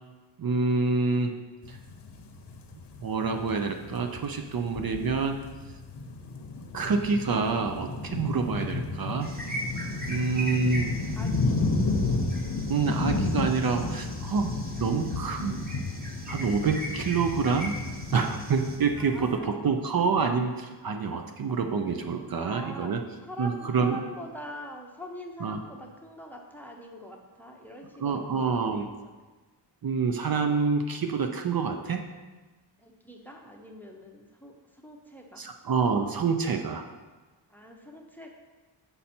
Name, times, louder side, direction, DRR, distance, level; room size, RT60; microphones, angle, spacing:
voice 1, 0.4-1.3 1.7-1.8 3.0-5.4 6.7-9.3 10.1-10.9 12.7-15.7 16.3-17.7 18.1-23.0 23.4-24.0 25.4-25.6 28.0-28.9 29.8-32.0 35.4-36.8, right 5 dB, 50° right, 5 dB, 0.5 m, -27 dB
sound 1, 1.6-19.4, left 3 dB, 65° left, 0.7 m, -32 dB
sound 2, 9.2-18.8, right 1 dB, 20° right, 1.0 m, -40 dB
voice 2, 11.2-11.6 19.0-19.6 22.4-22.9 23.2-29.1 32.8-35.4 37.5-38.3, equal, 5° left, 2 dB, 0.6 m, -43 dB
7.1 x 5.3 x 4.2 m, 1.3 s
wide cardioid pair, 160°, 45 cm